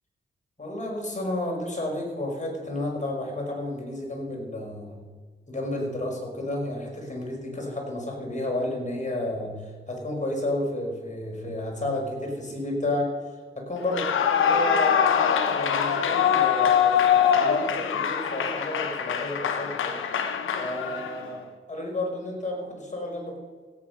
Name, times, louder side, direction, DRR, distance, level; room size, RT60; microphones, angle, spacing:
voice 1, 0.6-5.1 5.5-20.0 20.5-23.4, left 1 dB, 35° left, -1 dB, 5.4 m, -32 dB
Clapping / Cheering / Applause, 13.8-21.3, left 8 dB, 90° left, 1.1 m, -23 dB
16.0 x 9.0 x 6.1 m, 1.5 s
cardioid pair, 50°, 20 cm